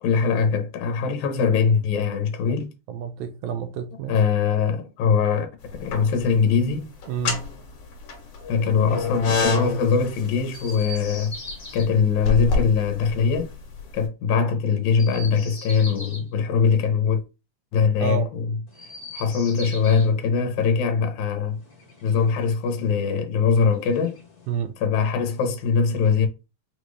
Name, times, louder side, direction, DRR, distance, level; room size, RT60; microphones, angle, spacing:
voice 1, 0.0-2.7 4.1-5.5 5.8-6.9 8.5-11.3 11.7-13.5 13.9-17.2 17.7-18.6 19.1-21.6 22.0-24.2 24.8-26.3, left 6 dB, 75° left, 2.3 m, -22 dB
voice 2, 2.9-4.2 7.1-7.4 18.0-18.3 24.5-24.8, right 7 dB, 80° right, 1.7 m, -29 dB
sound 1, 5.7-6.4 7.0-13.9, left 4 dB, 55° left, 2.2 m, -27 dB
Chirp tweet, 10.5-11.9 14.9-16.3 18.7-20.1 21.5-22.6 23.7-24.6, left 1 dB, 25° left, 0.9 m, -40 dB
5.9 x 2.5 x 3.2 m
omnidirectional pair, 3.5 m